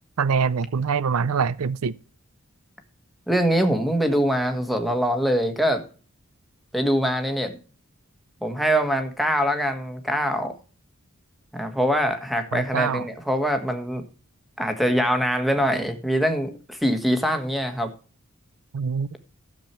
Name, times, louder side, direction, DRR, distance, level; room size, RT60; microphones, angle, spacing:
voice 1, 0.2-2.0 12.5-13.1 18.7-19.2, right 6 dB, 75° right, 0.5 m, -24 dB
voice 2, 3.3-5.8 6.7-7.6 8.4-10.5 11.5-14.1 14.6-17.9, equal, ahead, 1.4 m, -23 dB
13.0 x 7.3 x 4.4 m
head